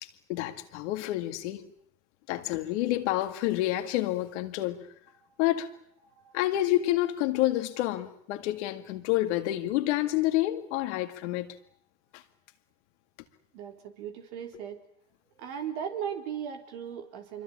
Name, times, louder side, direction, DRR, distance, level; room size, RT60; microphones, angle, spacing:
voice 1, 0.0-1.7 2.3-4.9 5.4-5.7 6.3-11.5 12.1-12.2, left 15 dB, 85° left, 2.2 m, -28 dB
voice 2, 13.5-14.8 15.4-17.4, right 8 dB, 85° right, 3.9 m, -37 dB
25.5 x 23.0 x 8.7 m
hypercardioid pair, 70°, 34 cm